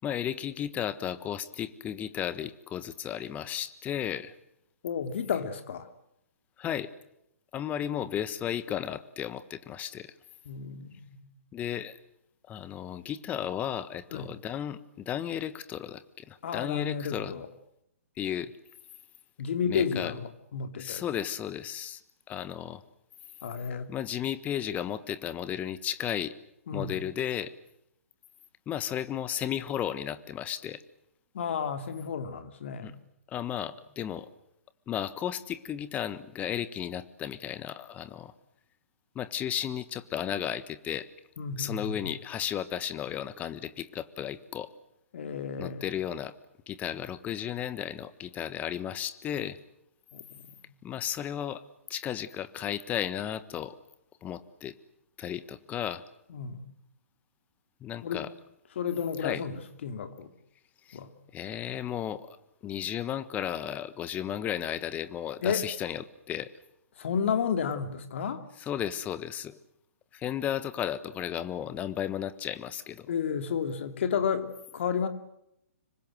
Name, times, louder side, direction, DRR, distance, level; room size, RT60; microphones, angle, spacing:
voice 1, 0.0-4.3 6.6-6.9 7.5-10.1 11.5-12.0 12.5-17.3 18.2-18.5 19.7-20.1 20.8-22.0 22.3-22.8 23.9-26.3 26.7-27.5 28.7-30.8 32.8-32.9 33.3-34.3 34.9-38.3 39.1-41.1 41.6-44.7 45.6-46.3 46.7-49.6 50.8-51.6 51.9-53.8 54.2-54.7 55.2-56.0 57.8-58.3 59.2-59.4 60.9-61.0 61.3-62.4 62.6-66.5 68.7-69.6 70.1-73.1, left 10 dB, 20° left, 1.4 m, -34 dB
voice 2, 4.8-5.9 10.4-11.3 14.1-14.4 16.4-17.5 19.4-21.0 23.4-23.9 26.7-27.0 31.3-32.9 41.4-42.1 45.1-45.9 50.1-50.6 56.3-56.7 58.0-58.2 58.7-60.3 60.9-61.1 65.4-65.7 67.0-68.4 73.1-75.1, left 7 dB, 55° left, 2.8 m, -32 dB
26.0 x 23.5 x 7.7 m
figure-of-eight pair, 130°, 8 cm